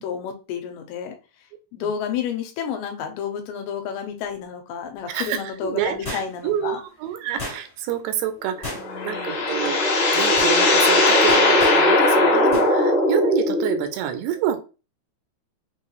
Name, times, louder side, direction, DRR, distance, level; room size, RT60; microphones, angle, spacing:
voice 1, 0.0-1.2 1.7-6.8 8.8-9.5, left 7 dB, 85° left, 4 dB, 2.7 m, -31 dB
voice 2, 5.1-8.7 9.0-9.8 10.1-14.6, right 10 dB, 85° right, 7 dB, 2.7 m, -27 dB
sound 1, 6.0-6.6 7.4-7.9 8.6-9.1 9.5-9.7 10.1-10.6 11.3-11.8 12.5-12.7 13.0-13.1, left 1 dB, 25° left, 1.1 m, -34 dB
sound 2, 8.7-13.9, left 2 dB, 65° left, 2.6 m, -18 dB
6.3 x 2.3 x 3.0 m, 0.32 s
omnidirectional pair, 4.6 m